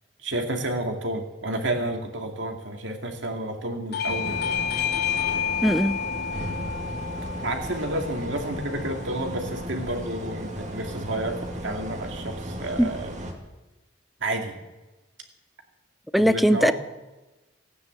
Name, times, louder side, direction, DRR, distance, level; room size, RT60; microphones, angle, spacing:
voice 1, 0.2-4.4 7.4-13.1 14.2-14.6 16.2-16.7, right 1 dB, 75° right, 3 dB, 2.3 m, -30 dB
Bell / Doorbell, 3.9-9.1, left 8 dB, 60° left, 1.2 m, -30 dB
sound 1, 4.1-13.3, equal, 40° right, 2.3 m, -35 dB
voice 2, 5.6-6.0 12.8-12.9 16.1-16.7, equal, ahead, 12 dB, 0.5 m, -19 dB
16.0 x 9.5 x 7.9 m, 1.1 s
head